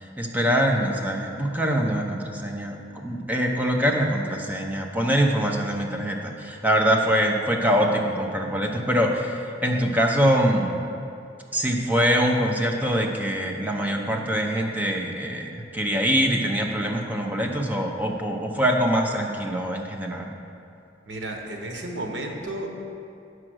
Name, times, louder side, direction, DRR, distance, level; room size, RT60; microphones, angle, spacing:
voice 1, 0.2-10.8 11.5-20.3, equal, 10° right, 1 dB, 0.7 m, -24 dB
voice 2, 21.1-22.7, right 1 dB, 85° right, 2 dB, 1.1 m, -32 dB
8.8 x 4.9 x 6.3 m, 2.6 s
head